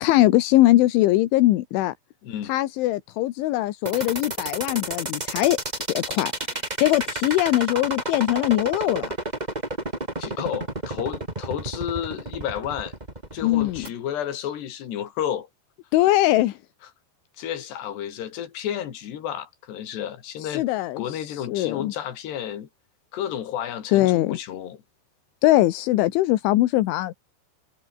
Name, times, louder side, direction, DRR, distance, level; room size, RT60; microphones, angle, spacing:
voice 1, 0.0-2.0 2.4-5.6 5.9-6.3 6.8-9.1 13.4-13.9 15.9-16.6 20.4-21.9 23.9-24.4 25.4-27.1, left 16 dB, 85° left, 3.6 m, -21 dB
sound 1, 3.9-13.9, right 1 dB, 10° right, 3.2 m, -31 dB
voice 2, 10.2-12.9 13.3-15.5 17.4-20.6 21.0-22.7 23.1-24.8, left 10 dB, 65° left, 4.7 m, -31 dB
omnidirectional pair, 5.4 m